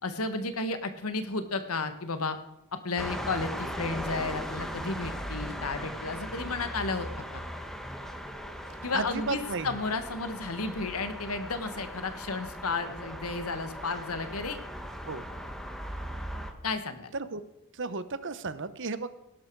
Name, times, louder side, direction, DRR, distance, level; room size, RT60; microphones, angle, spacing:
voice 1, 0.0-2.4 2.7-7.4 8.8-14.6 16.6-17.1, left 3 dB, 75° left, 9 dB, 1.4 m, -33 dB
sound 1, 3.0-16.5, equal, ahead, 1.4 m, -38 dB
voice 2, 8.7-9.8 15.1-15.2 17.1-17.4 17.7-19.1, right 4 dB, 60° right, 13 dB, 1.0 m, -34 dB
18.5 x 11.5 x 4.7 m, 0.90 s
head